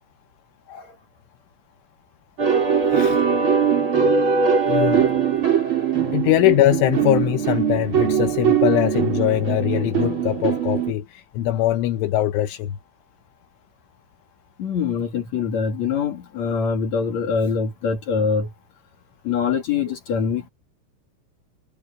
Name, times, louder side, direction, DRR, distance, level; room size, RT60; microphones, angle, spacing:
sound 1, 2.4-10.9, right 6 dB, 30° right, 3.9 m, -21 dB
voice 1, 2.9-3.2 4.7-5.1 6.1-12.8, left 14 dB, 80° left, 3.6 m, -21 dB
voice 2, 14.6-18.5 19.2-20.5, left 5 dB, 50° left, 2.6 m, -24 dB
omnidirectional pair, 5.7 m